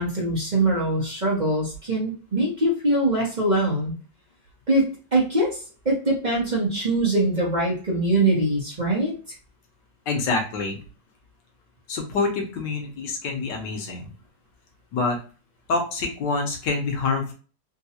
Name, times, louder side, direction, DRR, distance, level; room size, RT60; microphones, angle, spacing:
voice 1, 0.0-3.9 4.7-4.8 5.1-5.6 5.8-9.1, right 1 dB, 30° right, -5 dB, 1.0 m, -22 dB
voice 2, 10.1-10.8 11.9-14.1 14.9-15.2 15.7-17.3, left 3 dB, 85° left, 2 dB, 1.5 m, -26 dB
3.8 x 2.3 x 2.8 m, 0.36 s
omnidirectional pair, 1.9 m